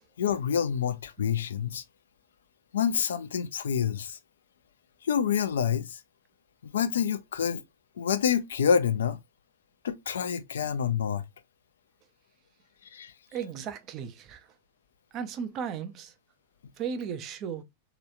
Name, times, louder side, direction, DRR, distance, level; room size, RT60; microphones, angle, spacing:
voice 1, 0.2-1.8 2.7-4.2 5.0-6.0 6.6-7.6 8.0-9.2 9.8-11.2 12.9-13.1, left 8 dB, 65° left, 0.4 m, -27 dB
voice 2, 13.3-14.5 15.1-16.1 16.8-17.6, right 7 dB, 35° right, 0.5 m, -35 dB
3.1 x 2.9 x 2.4 m
figure-of-eight pair, 90°, 0 cm